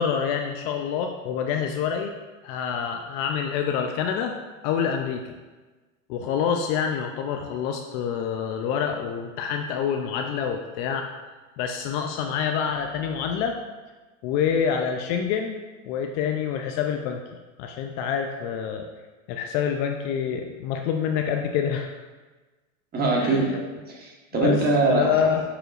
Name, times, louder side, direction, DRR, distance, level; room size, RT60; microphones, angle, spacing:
voice 1, 0.0-2.1 2.4-4.3 4.6-5.4 6.1-11.1 11.6-13.6 14.2-15.6 15.9-17.2 17.6-18.9 19.3-21.9 23.2-23.6 24.4-24.6 24.9-25.4, left 7 dB, 40° left, 4 dB, 0.5 m, -26 dB
voice 2, 22.9-25.2, right 3 dB, 25° right, -1 dB, 1.2 m, -23 dB
7.7 x 4.9 x 2.5 m, 1.3 s
supercardioid pair, 125°, 40 cm